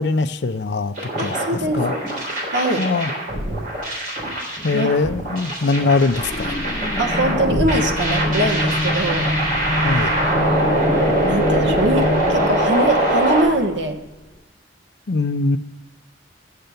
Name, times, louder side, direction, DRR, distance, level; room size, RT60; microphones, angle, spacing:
voice 1, 0.0-1.4 1.7-1.9 2.8-3.1 4.6-6.6 9.8-10.1 15.1-15.6, left 3 dB, 60° left, 11 dB, 0.5 m, -21 dB
sound 1, 1.0-13.4, right 1 dB, 45° right, 3.6 m, -23 dB
voice 2, 1.2-1.8 2.5-2.8 4.7-4.9 7.0-9.3 10.3-11.0 11.2-14.0, right 1 dB, 65° right, 4 dB, 1.1 m, -22 dB
sound 2, 6.0-14.3, left 1 dB, 35° left, 1.1 m, -26 dB
9.0 x 6.7 x 6.8 m, 1.0 s
head